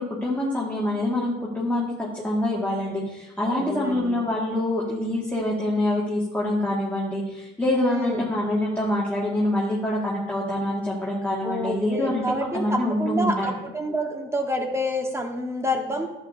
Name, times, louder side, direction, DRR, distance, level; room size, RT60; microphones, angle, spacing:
voice 1, 0.0-13.5, left 1 dB, 5° left, -6 dB, 1.9 m, -25 dB
voice 2, 3.4-4.1 7.9-8.2 11.4-16.1, equal, 15° right, 3 dB, 1.4 m, -28 dB
11.0 x 8.2 x 2.7 m, 1.0 s
cardioid pair, 90°, 20 cm